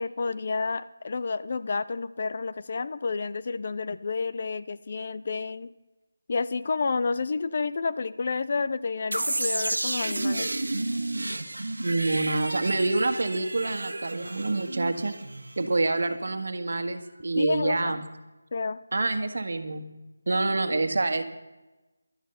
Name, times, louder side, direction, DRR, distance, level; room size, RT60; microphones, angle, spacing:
voice 1, 0.0-5.7 6.3-10.5 17.4-17.9 18.5-18.8, left 4 dB, 40° left, 14 dB, 0.5 m, -30 dB
sound 1, 9.1-15.9, right 2 dB, 90° right, 1.4 m, -31 dB
voice 2, 11.8-15.1 15.6-18.0 18.9-19.9 20.3-21.2, right 2 dB, 60° right, 8 dB, 1.5 m, -27 dB
12.0 x 11.5 x 6.8 m, 1.1 s
figure-of-eight pair, 170°, 0 cm